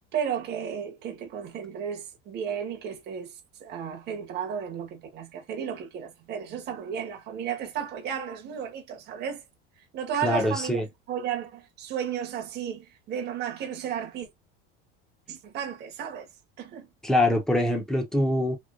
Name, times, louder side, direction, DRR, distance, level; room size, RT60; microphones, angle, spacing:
voice 1, 0.1-9.4 9.9-10.8 11.1-14.3 15.3-16.3 16.6-16.9, right 8 dB, 35° right, 1.0 m, -33 dB
voice 2, 10.2-10.8 17.0-18.6, left 1 dB, ahead, 0.8 m, -24 dB
3.2 x 2.9 x 2.5 m
cardioid pair, 150°, 29 cm